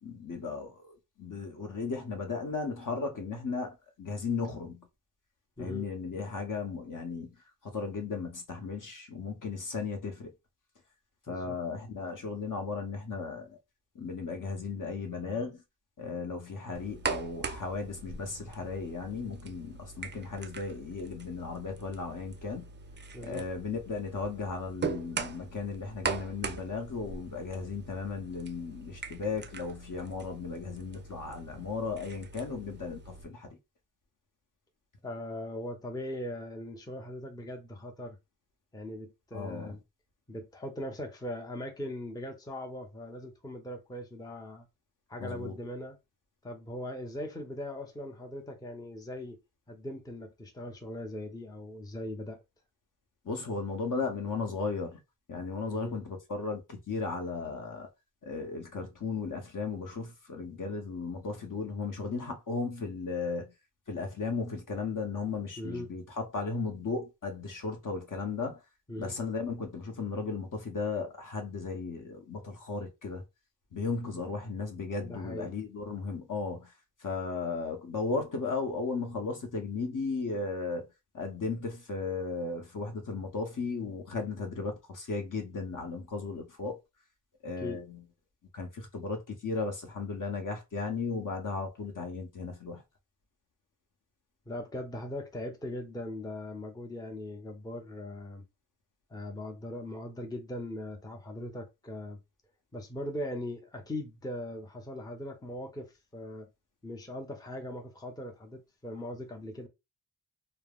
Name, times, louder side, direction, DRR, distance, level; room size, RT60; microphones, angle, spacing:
voice 1, 0.0-4.9 5.6-7.4 7.6-10.3 11.3-13.6 13.9-15.6 16.0-22.7 23.2-33.6 39.3-39.7 45.2-45.5 53.2-55.0 55.3-57.9 58.2-63.5 63.9-68.6 69.0-73.2 73.7-76.7 77.0-80.9 81.1-86.8 87.4-88.0 88.5-92.8, left 4 dB, 45° left, 0.9 m, -35 dB
sound 1, 16.7-33.2, right 5 dB, 25° right, 0.4 m, -41 dB
voice 2, 23.1-23.5 35.0-38.2 38.7-39.8 40.3-44.7 45.1-46.0 46.4-49.4 49.7-52.4 55.7-56.0 65.6-65.9 68.9-69.1 75.0-75.5 87.6-87.9 94.5-98.4 99.1-102.2 102.7-106.5 106.8-109.7, left 1 dB, 10° left, 0.7 m, -40 dB
3.2 x 2.0 x 2.3 m
cardioid pair, 50°, 45 cm